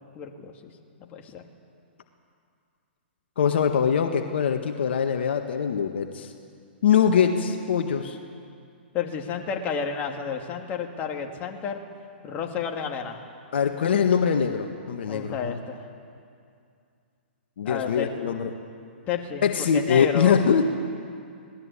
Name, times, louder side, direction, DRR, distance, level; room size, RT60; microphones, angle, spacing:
voice 1, 0.1-0.7 1.0-1.4 8.9-11.8 12.2-13.2 15.1-15.9 17.6-18.1 19.1-20.4, left 6 dB, 30° left, 2 dB, 2.6 m, -31 dB
voice 2, 3.4-6.3 6.8-8.2 13.5-15.5 17.6-18.5 19.4-20.7, left 7 dB, 70° left, 5 dB, 1.7 m, -23 dB
25.5 x 18.5 x 8.6 m, 2.4 s
hypercardioid pair, 130°, 6 cm